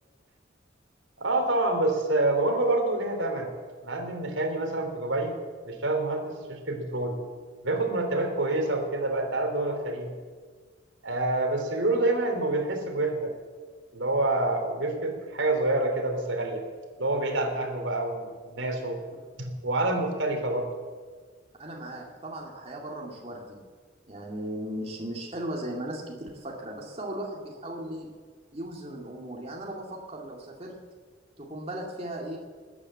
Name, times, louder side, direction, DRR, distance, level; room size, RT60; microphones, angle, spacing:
voice 1, 1.2-3.5 3.8-5.3 5.6-7.2 7.6-10.1 11.0-13.3 13.9-16.6 17.0-19.0 19.4-20.7, right 2 dB, 85° right, 3 dB, 3.1 m, -27 dB
voice 2, 21.6-23.6 24.1-28.1 28.5-30.8 31.4-32.4, right 1 dB, 30° right, -1 dB, 2.3 m, -37 dB
20.0 x 9.7 x 7.4 m, 1.5 s
head